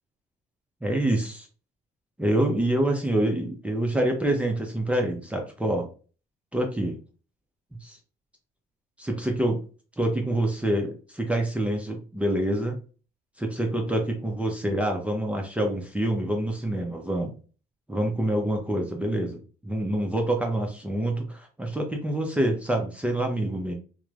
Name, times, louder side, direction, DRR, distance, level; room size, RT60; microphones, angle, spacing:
voice 1, 0.8-1.5 2.2-5.9 6.5-7.0 7.8-8.0 9.0-9.6 10.0-12.8 13.4-17.3 17.9-23.7, right 1 dB, 5° right, 2 dB, 0.5 m, -26 dB
2.9 x 2.0 x 2.3 m, 0.37 s
cardioid pair, 110°, 17 cm